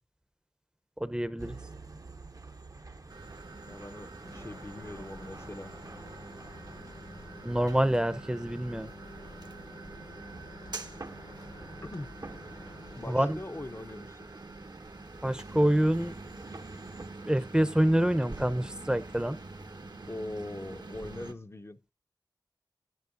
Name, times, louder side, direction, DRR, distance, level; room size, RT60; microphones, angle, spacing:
voice 1, 1.0-1.6 7.4-8.9 13.1-13.4 15.2-16.2 17.3-19.4, right 1 dB, 10° right, 0.6 m, -26 dB
sound 1, 1.4-17.1, right 3 dB, 55° right, 0.7 m, -50 dB
sound 2, 3.1-21.3, right 3 dB, 70° right, 1.0 m, -46 dB
voice 2, 3.6-5.7 11.8-12.1 13.0-14.3 20.1-21.8, left 2 dB, 35° left, 0.5 m, -41 dB
sound 3, 4.2-13.0, left 2 dB, 65° left, 0.8 m, -50 dB
12.5 x 9.4 x 2.5 m
wide cardioid pair, 50°, 8 cm